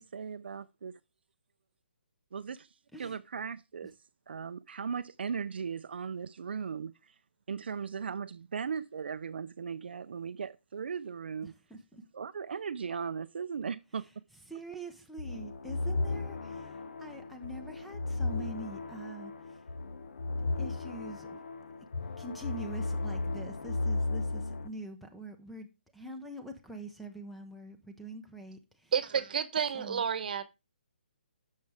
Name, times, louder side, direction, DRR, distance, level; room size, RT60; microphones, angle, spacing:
voice 1, 0.0-0.9 2.3-3.9 4.3-7.1 7.5-11.5 12.1-14.0, right 6 dB, 70° right, 0.5 m, -38 dB
voice 2, 11.4-12.0 14.5-19.6 20.4-21.4 21.8-21.9 22.2-25.7 25.9-28.9 29.7-30.0, right 1 dB, ahead, 0.6 m, -45 dB
sound 1, 15.2-24.7, left 3 dB, 60° left, 1.0 m, -35 dB
voice 3, 28.9-30.4, right 7 dB, 50° right, 1.0 m, -30 dB
10.5 x 6.6 x 3.4 m
hypercardioid pair, 170°, 6 cm